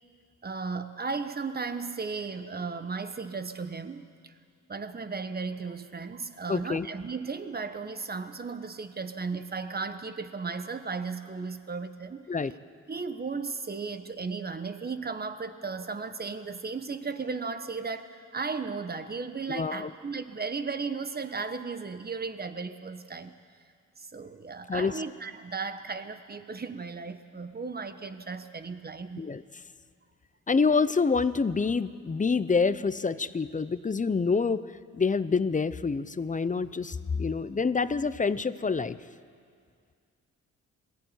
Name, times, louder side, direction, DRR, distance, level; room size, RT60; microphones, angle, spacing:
voice 1, 0.4-4.3 4.7-12.3 12.9-23.3 24.0-29.3, right 4 dB, 30° right, 10 dB, 1.3 m, -35 dB
voice 2, 6.5-6.9 12.3-12.5 19.5-19.9 24.7-24.9 29.2-29.4 30.5-34.6 34.9-39.0, left 4 dB, 25° left, 15 dB, 0.7 m, -27 dB
21.0 x 15.0 x 9.3 m, 2.2 s
cardioid pair, 75°, 32 cm